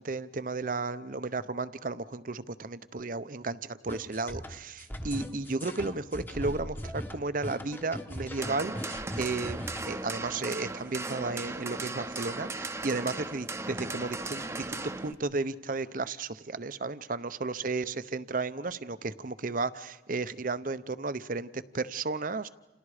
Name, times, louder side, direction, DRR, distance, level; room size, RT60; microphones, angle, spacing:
voice 1, 0.0-22.5, right 3 dB, 50° right, 14 dB, 0.8 m, -34 dB
sound 1, 3.9-9.9, equal, 10° left, 1.1 m, -39 dB
sound 2, 8.4-15.1, right 2 dB, 15° right, 0.8 m, -37 dB
29.5 x 29.0 x 5.0 m, 1.2 s
head